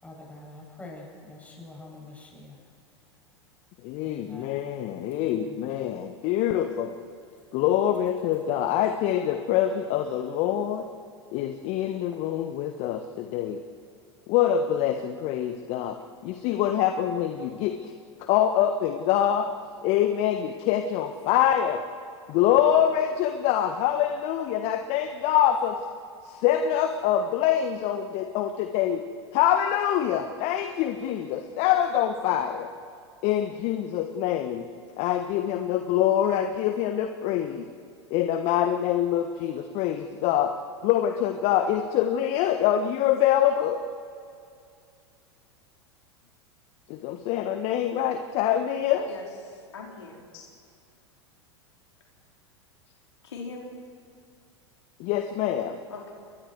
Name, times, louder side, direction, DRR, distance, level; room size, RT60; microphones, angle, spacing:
voice 1, 0.0-2.6 4.0-4.5 5.1-5.6 12.1-12.2, left 2 dB, 10° left, -2 dB, 7.9 m, -45 dB
voice 2, 3.8-6.9 7.5-10.9 11.3-13.6 14.3-16.0 16.2-17.9 18.3-19.5 19.8-21.8 22.3-25.8 26.2-29.0 29.3-32.7 33.2-34.7 35.0-37.7 38.1-40.5 40.8-43.8 46.9-49.1 50.3-50.4 55.0-55.8, left 10 dB, 45° left, 7 dB, 1.3 m, -25 dB
voice 3, 49.1-50.2 53.2-53.7 55.9-56.1, left 4 dB, 75° left, -1 dB, 4.3 m, -41 dB
29.0 x 22.0 x 4.7 m, 2.4 s
figure-of-eight pair, 90°, 14 cm